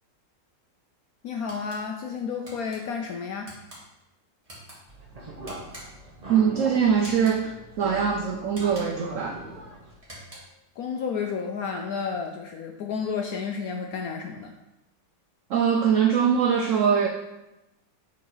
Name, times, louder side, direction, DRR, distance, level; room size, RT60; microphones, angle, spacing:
voice 1, 1.2-3.5 10.8-14.5, left 5 dB, 70° left, 3 dB, 0.9 m, -31 dB
sound 1, 1.5-1.8 2.5-2.8 3.4-3.8 4.4-4.8 5.5-6.1 7.0-7.4 8.5-9.1 10.0-10.6, right 1 dB, 20° right, 1.9 m, -45 dB
sound 2, 4.9-10.0, right 1 dB, 35° right, 0.6 m, -40 dB
voice 2, 6.3-9.4 15.5-17.1, right 7 dB, 75° right, 3 dB, 0.7 m, -22 dB
7.8 x 3.6 x 4.7 m, 0.95 s
omnidirectional pair, 2.0 m